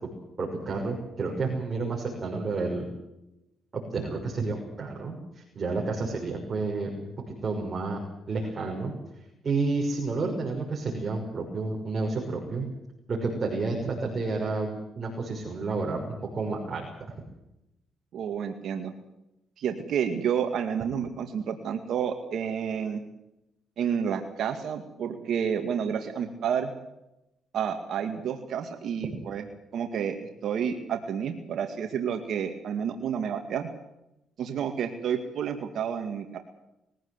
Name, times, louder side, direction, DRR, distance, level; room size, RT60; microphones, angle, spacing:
voice 1, 0.4-2.9 3.9-6.9 7.4-8.0 8.3-12.7 13.1-16.0 16.3-16.9, right 3 dB, 40° right, 0 dB, 6.3 m, -30 dB
voice 2, 18.1-18.9 19.6-23.0 23.8-26.7 27.5-29.4 29.7-30.2 30.4-33.7 34.4-36.4, right 7 dB, 70° right, 5 dB, 2.1 m, -30 dB
22.0 x 16.5 x 8.2 m, 0.89 s
cardioid pair, 90°, 0 cm